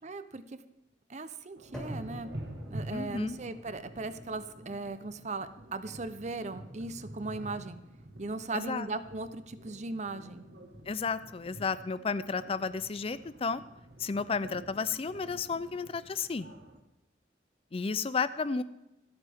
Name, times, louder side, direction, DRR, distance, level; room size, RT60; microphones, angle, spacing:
voice 1, 0.0-0.6 1.1-2.3 2.7-7.8 8.2-10.5, right 3 dB, 40° right, 12 dB, 0.7 m, -38 dB
sound 1, 1.6-16.8, right 1 dB, 70° right, 1.5 m, -47 dB
sound 2, 1.7-9.8, equal, 5° left, 2.9 m, -50 dB
voice 2, 2.9-3.4 8.5-8.9 10.9-13.6 14.0-16.5 17.7-18.6, left 5 dB, 30° left, 15 dB, 0.4 m, -32 dB
25.5 x 9.0 x 3.6 m, 0.94 s
head